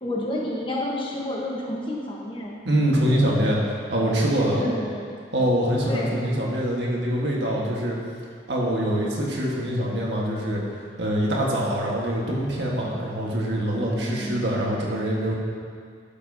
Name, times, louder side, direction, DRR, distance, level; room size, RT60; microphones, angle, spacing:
voice 1, 0.0-2.5 4.6-5.1 5.9-6.1 14.0-14.5, left 1 dB, 30° left, -3 dB, 1.2 m, -30 dB
voice 2, 2.6-4.7 5.3-8.0 8.5-10.6 11.0-15.4, equal, 90° right, -3 dB, 1.6 m, -24 dB
12.5 x 7.1 x 2.8 m, 2.2 s
head